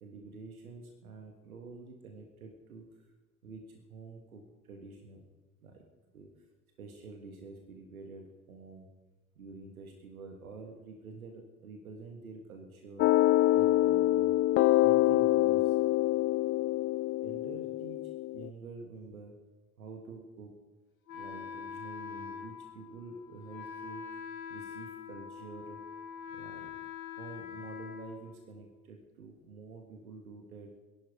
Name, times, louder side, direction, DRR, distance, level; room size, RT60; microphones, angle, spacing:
voice 1, 0.0-3.0 3.4-5.2 5.6-5.8 6.1-6.5 6.8-8.9 9.4-13.1 13.5-14.4 14.8-15.8 16.1-16.2 17.2-18.0 18.3-19.3 19.8-20.6 21.1-24.2 24.5-25.8 26.3-26.7 27.2-30.8, right 4 dB, 80° right, 3 dB, 1.7 m, -48 dB
sound 1, 13.0-18.5, left 16 dB, 35° left, 0.4 m, -26 dB
Wind instrument woodwind instrument, 21.1-28.8, left 7 dB, 75° left, 1.4 m, -44 dB
21.5 x 11.5 x 4.8 m, 1.2 s
figure-of-eight pair, 60°, 42 cm